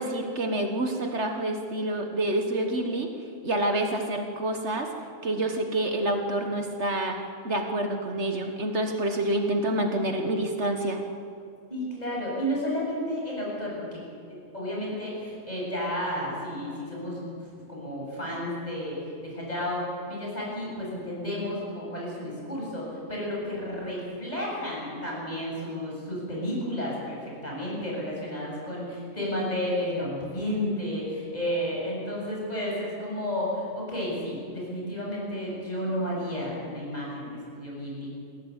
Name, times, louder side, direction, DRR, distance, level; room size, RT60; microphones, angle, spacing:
voice 1, 0.0-3.1 3.4-4.9 5.2-7.2 7.4-11.0, right 1 dB, 60° right, 4 dB, 1.8 m, -27 dB
voice 2, 11.7-14.0 14.3-17.2 17.5-19.0 19.2-38.1, equal, 30° left, -4 dB, 7.8 m, -32 dB
21.5 x 16.5 x 8.2 m, 2.4 s
omnidirectional pair, 1.3 m